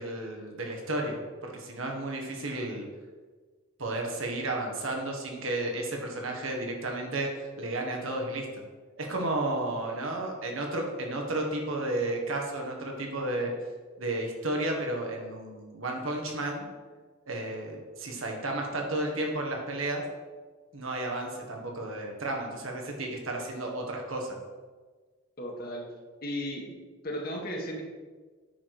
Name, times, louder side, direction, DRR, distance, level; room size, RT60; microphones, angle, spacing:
voice 1, 0.0-2.9 3.8-8.6 9.0-13.5 14.0-16.7 17.3-20.0 20.7-24.4, right 2 dB, 75° right, 1 dB, 1.7 m, -32 dB
voice 2, 25.4-25.9 26.2-26.7 27.0-27.8, equal, 45° left, 0 dB, 1.6 m, -35 dB
8.9 x 6.2 x 4.9 m, 1.4 s
head